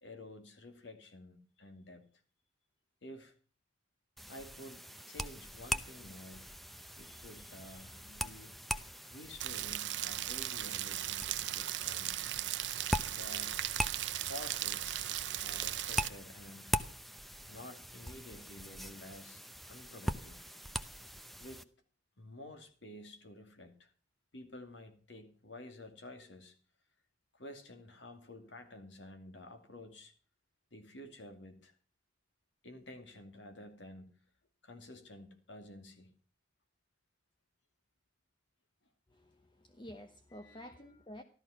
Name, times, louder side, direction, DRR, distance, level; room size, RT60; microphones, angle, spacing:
voice 1, 0.0-2.0 3.0-3.3 4.3-6.5 7.0-8.5 9.1-12.2 13.1-13.6 14.3-15.0 15.4-16.8 17.5-20.4 21.4-21.7 22.2-23.9 24.3-26.5 27.3-30.1 30.7-31.7 32.6-34.1 34.6-36.1 40.3-41.0, left 1 dB, 80° left, 2.6 m, -51 dB
sound 1, 4.2-21.6, equal, ahead, 0.7 m, -42 dB
Rain, 9.4-16.1, right 13 dB, 75° right, 0.7 m, -37 dB
voice 2, 39.1-41.2, left 1 dB, 25° left, 0.9 m, -50 dB
14.0 x 13.0 x 5.8 m
head